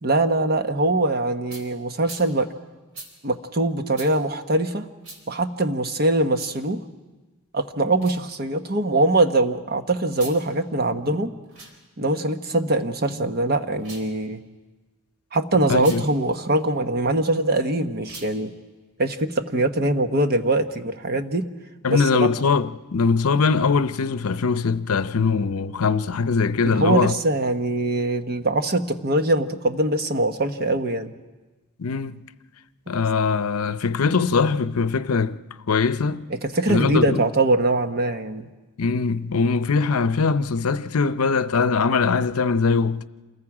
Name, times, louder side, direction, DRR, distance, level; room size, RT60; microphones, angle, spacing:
voice 1, 0.0-2.5 3.2-4.9 5.3-6.8 7.5-11.3 12.0-14.4 15.3-18.5 19.0-21.5 21.9-22.3 26.6-31.1 36.3-38.5, right 2 dB, 45° right, 1.1 m, -22 dB
sound 1, 1.5-1.7 2.0-2.3 2.9-3.1 3.9-4.1 5.0-5.2 6.3-6.6 7.9-8.2 10.1-10.4 11.4-11.7 13.7-14.1 15.7-16.0 18.0-18.3, right 2 dB, 65° right, 4.2 m, -41 dB
voice 2, 15.5-16.0 21.8-27.1 31.8-32.2 32.9-35.4 35.7-36.2 36.7-37.2 38.8-43.0, left 4 dB, 80° left, 0.6 m, -21 dB
27.5 x 21.0 x 4.9 m
head